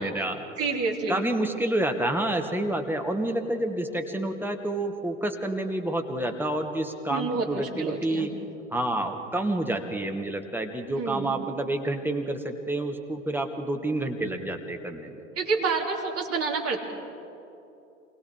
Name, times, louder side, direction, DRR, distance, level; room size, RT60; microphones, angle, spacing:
voice 1, 0.0-0.4 1.1-8.3 8.7-15.2, right 1 dB, 5° right, 4 dB, 1.7 m, -29 dB
voice 2, 0.6-1.3 7.1-8.3 11.0-11.3 15.4-16.8, right 4 dB, 40° right, 0 dB, 3.5 m, -28 dB
27.5 x 21.0 x 5.0 m, 2.8 s
figure-of-eight pair, 75°, 38 cm